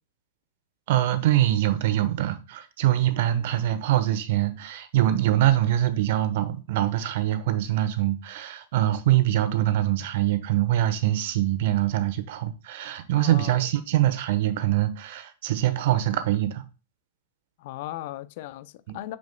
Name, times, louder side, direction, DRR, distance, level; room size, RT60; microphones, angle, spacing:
voice 1, 0.9-16.6 18.9-19.0, right 13 dB, 60° right, 1.1 m, -24 dB
voice 2, 13.2-13.7 17.6-19.2, left 15 dB, 55° left, 0.6 m, -37 dB
6.9 x 6.5 x 2.3 m
hypercardioid pair, 105°, 0 cm